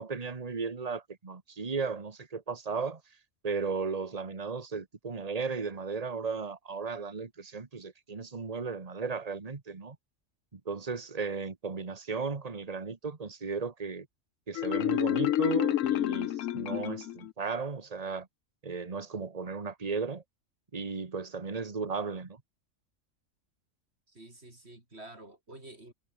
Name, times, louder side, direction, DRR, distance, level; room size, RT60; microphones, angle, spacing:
voice 1, 0.0-3.0 3.4-10.0 10.5-14.1 14.5-18.3 18.6-20.2 20.7-22.4, right 5 dB, 30° right, 1.5 m, -35 dB
Marimba xylophone, 14.6-17.3, left 12 dB, 85° left, 1.0 m, -29 dB
voice 2, 24.1-25.9, right 2 dB, 55° right, 5.5 m, -49 dB
omnidirectional pair, 1.3 m